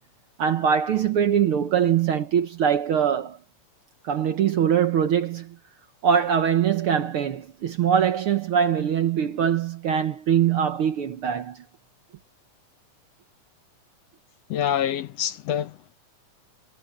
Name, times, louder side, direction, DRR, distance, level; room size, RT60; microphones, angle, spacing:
voice 1, 0.4-3.4 4.0-5.6 6.0-11.6, right 8 dB, 65° right, 1.5 m, -22 dB
voice 2, 14.5-15.9, left 10 dB, 70° left, 1.8 m, -26 dB
omnidirectional pair, 3.4 m